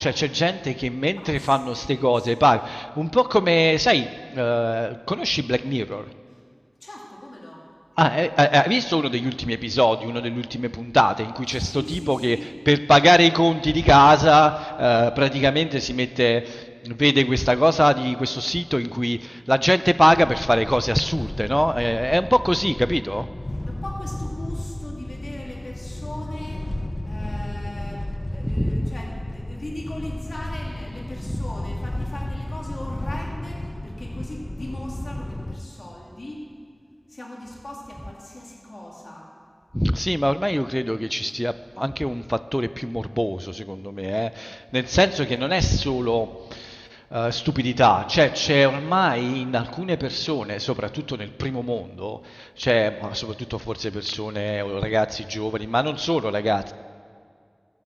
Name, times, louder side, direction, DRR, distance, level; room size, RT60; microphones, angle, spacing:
voice 1, 0.0-6.0 8.0-12.4 12.7-23.3 28.4-28.9 39.7-56.7, equal, 5° left, 13 dB, 0.3 m, -21 dB
voice 2, 1.6-2.1 6.3-6.4 6.8-7.6 11.5-12.6 23.5-26.7 27.0-36.5 37.1-39.3, left 1 dB, 90° left, -2 dB, 2.4 m, -38 dB
sound 1, 20.1-35.6, left 1 dB, 45° left, 0.8 m, -33 dB
14.5 x 7.6 x 7.5 m, 2.2 s
wide cardioid pair, 45°, 0 cm